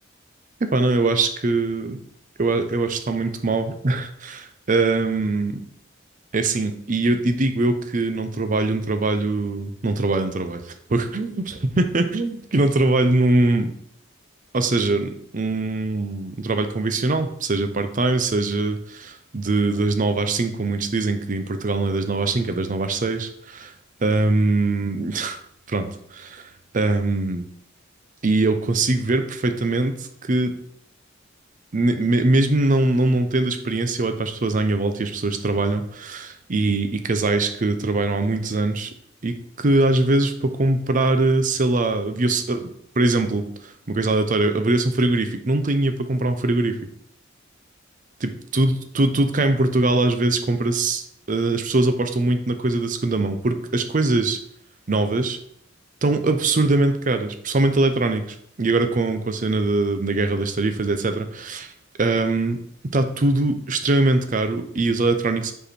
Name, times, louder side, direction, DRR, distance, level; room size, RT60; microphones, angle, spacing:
voice 1, 0.6-2.0 2.4-5.6 6.3-10.6 10.9-13.7 14.5-23.7 24.0-25.4 25.7-27.5 28.2-30.5 31.7-38.9 39.2-46.8 48.2-54.4 54.9-55.4 56.0-61.7 62.0-62.6 62.9-65.5, right 2 dB, 40° right, 8 dB, 0.6 m, -22 dB
5.3 x 4.8 x 4.3 m, 0.67 s
head